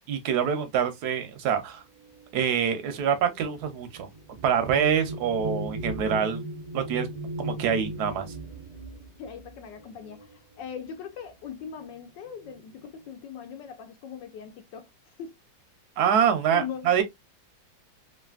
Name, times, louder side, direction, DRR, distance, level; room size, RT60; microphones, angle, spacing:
voice 1, 0.1-1.8 2.3-4.1 4.4-6.4 6.7-7.1 7.4-8.3 16.0-17.0, right 8 dB, 70° right, 1.0 m, -25 dB
sound 1, 2.0-10.9 11.8-11.9 12.3-12.9, right 1 dB, 50° right, 0.4 m, -38 dB
voice 2, 9.2-14.9 15.2-15.4 16.5-16.9, left 7 dB, 75° left, 1.2 m, -40 dB
3.2 x 2.5 x 2.3 m
omnidirectional pair, 2.1 m